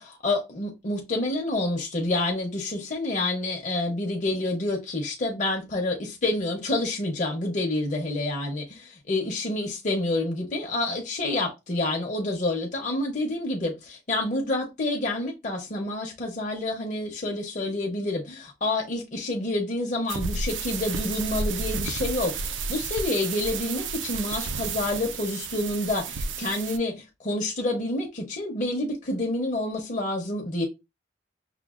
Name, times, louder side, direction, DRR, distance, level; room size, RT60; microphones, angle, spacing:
voice 1, 0.2-30.7, left 2 dB, 40° left, 0.6 m, -28 dB
sound 1, 20.1-26.8, right 4 dB, 80° right, 0.4 m, -32 dB
5.7 x 2.2 x 2.4 m
head